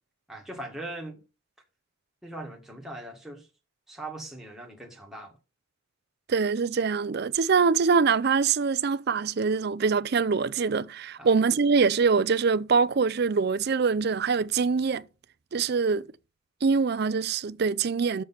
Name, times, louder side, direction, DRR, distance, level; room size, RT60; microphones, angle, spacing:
voice 1, 0.3-1.2 2.2-3.5 3.9-5.3 11.2-11.3, right 1 dB, ahead, 1.9 m, -40 dB
voice 2, 6.3-15.1 15.5-16.1 16.6-18.2, right 5 dB, 50° right, 0.4 m, -24 dB
6.8 x 6.5 x 5.8 m
head